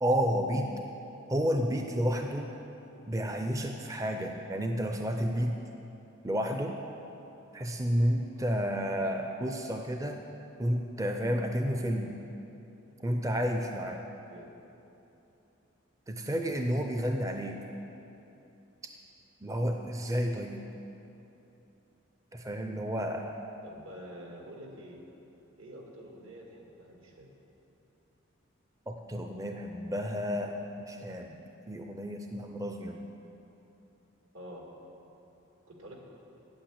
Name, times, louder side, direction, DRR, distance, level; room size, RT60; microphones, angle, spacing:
voice 1, 0.0-0.7 1.3-2.5 3.1-5.6 6.2-6.8 7.5-10.3 10.6-12.1 13.0-14.0 16.1-17.6 19.4-20.6 22.3-23.4 28.9-30.5 30.9-33.0, equal, 15° right, 4 dB, 0.4 m, -31 dB
voice 2, 23.6-25.0 25.6-27.3 34.3-34.7 35.7-36.0, right 1 dB, 80° right, 0 dB, 1.9 m, -47 dB
8.7 x 7.7 x 8.7 m, 2.9 s
head